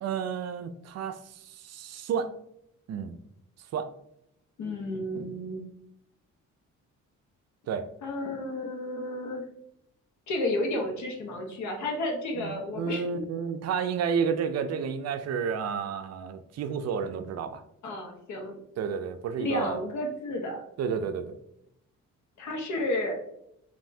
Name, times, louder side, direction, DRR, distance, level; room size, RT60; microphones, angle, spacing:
voice 1, 0.0-2.3 2.9-3.2 3.7-3.9 7.7-7.9 12.3-17.6 18.8-19.8 20.8-21.4, right 6 dB, 60° right, 10 dB, 0.4 m, -31 dB
voice 2, 4.6-5.6 8.0-9.4 10.3-13.2 17.8-18.6 19.4-20.6 22.4-23.2, left 1 dB, 70° left, 2 dB, 1.1 m, -32 dB
5.4 x 2.7 x 2.7 m, 0.78 s
cardioid pair, 90°, 30 cm